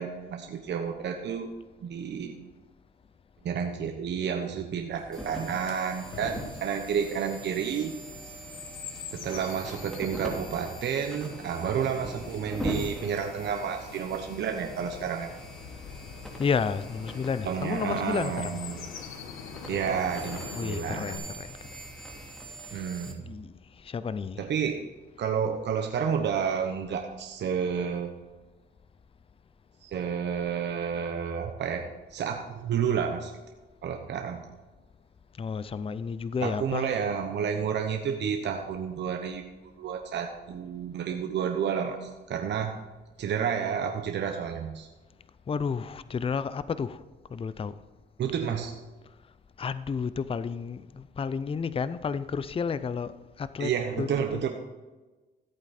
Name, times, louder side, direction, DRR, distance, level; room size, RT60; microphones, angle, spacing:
voice 1, 0.0-1.5 1.8-2.3 3.4-8.0 8.2-8.3 9.1-15.3 17.4-18.8 19.7-21.3 22.7-23.2 24.4-24.8 25.2-28.1 29.8-31.8 32.1-33.3 33.8-34.4 36.4-42.8 43.2-44.9 48.2-48.7 53.6-54.5, right 7 dB, 60° right, 1.1 m, -30 dB
Chirp tweet, 4.9-21.2, left 7 dB, 90° left, 1.2 m, -45 dB
sound 1, 5.1-23.1, right 1 dB, ahead, 2.8 m, -41 dB
voice 2, 16.4-18.6 20.5-21.6 22.7-24.5 35.4-37.0 45.5-47.0 47.3-47.8 49.6-54.5, left 6 dB, 30° left, 0.5 m, -32 dB
14.5 x 8.3 x 4.3 m
cardioid pair, 90°, 20 cm